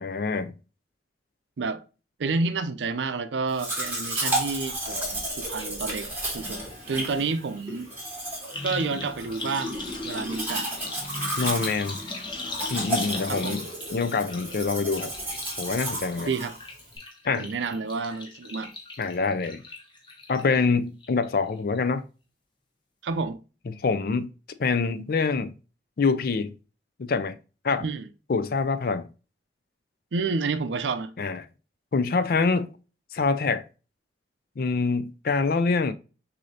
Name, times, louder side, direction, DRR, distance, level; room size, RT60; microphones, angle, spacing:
voice 1, 0.0-0.5 11.4-12.0 12.7-13.6 13.9-15.1 15.6-16.3 17.2-17.5 19.0-19.6 20.3-22.0 23.7-24.3 24.6-25.6 26.0-26.6 27.0-27.4 27.6-27.9 28.3-29.1 31.2-31.4 31.9-32.7 33.1-33.6 34.6-35.9, left 4 dB, 55° left, 0.4 m, -25 dB
voice 2, 2.2-6.1 6.3-6.6 6.9-7.9 8.6-10.9 13.3-13.6 16.2-16.6 17.4-18.7 23.0-23.4 27.8-28.1 30.1-31.1, right 4 dB, 80° right, 0.5 m, -29 dB
Domestic sounds home sounds, 3.6-17.0, right 1 dB, 10° right, 2.2 m, -33 dB
sound 1, 5.6-5.7 6.0-20.6 21.0-21.5 21.8-21.9, left 3 dB, 25° left, 0.9 m, -39 dB
6.3 x 2.7 x 2.7 m
head